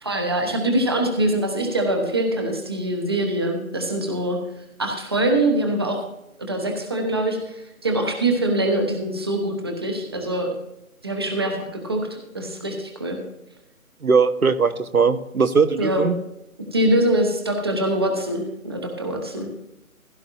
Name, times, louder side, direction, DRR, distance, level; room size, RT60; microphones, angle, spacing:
voice 1, 0.0-4.4 4.8-6.0 6.4-10.5 11.0-13.2 15.8-16.1 16.7-19.5, right 1 dB, 20° right, 3 dB, 0.9 m, -23 dB
voice 2, 14.0-16.1, right 5 dB, 75° right, 10 dB, 1.0 m, -19 dB
15.5 x 12.0 x 2.5 m, 0.88 s
figure-of-eight pair, 155°, 43 cm